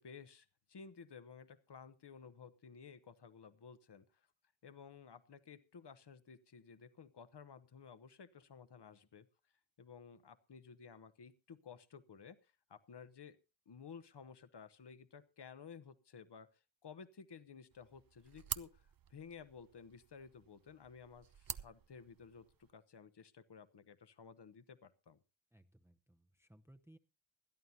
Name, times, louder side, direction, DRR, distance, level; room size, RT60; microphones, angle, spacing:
voice 1, 0.0-4.1 4.6-9.2 9.8-12.4 12.7-13.4 13.7-16.5 16.8-25.2, left 6 dB, 60° left, 12 dB, 1.1 m, -55 dB
sound 1, 17.7-22.7, right 9 dB, 50° right, 0.6 m, -49 dB
voice 2, 25.5-27.0, right 1 dB, 5° right, 8 dB, 0.8 m, -63 dB
20.5 x 12.5 x 2.8 m, 0.29 s
wide cardioid pair, 65°, 45 cm